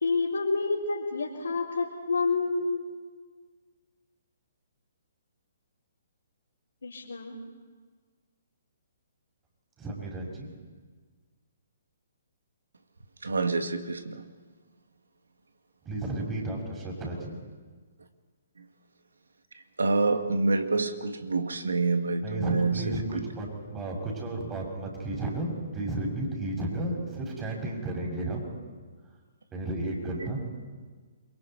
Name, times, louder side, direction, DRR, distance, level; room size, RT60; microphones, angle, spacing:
voice 1, 0.0-2.8 6.8-7.4, left 4 dB, 80° left, 4.0 m, -28 dB
voice 2, 9.8-10.5 15.8-17.4 22.2-28.5 29.5-30.4, right 2 dB, 20° right, 6.1 m, -33 dB
voice 3, 13.2-14.3 18.6-18.7 19.5-23.3 30.2-30.3, right 3 dB, 80° right, 1.8 m, -27 dB
28.5 x 23.0 x 4.5 m
figure-of-eight pair, 135°, 0 cm